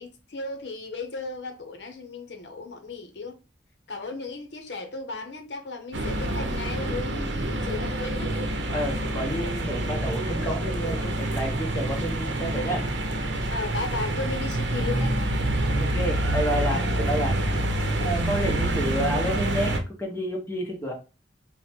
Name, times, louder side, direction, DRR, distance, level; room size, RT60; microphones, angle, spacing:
voice 1, 0.0-3.4 3.9-8.3 13.5-15.2, left 3 dB, 65° left, 0.7 m, -35 dB
sound 1, 5.9-19.8, right 1 dB, 80° right, 0.7 m, -27 dB
voice 2, 8.7-12.9 15.7-17.4 18.0-20.9, equal, 15° left, 0.8 m, -30 dB
3.7 x 2.1 x 4.3 m
head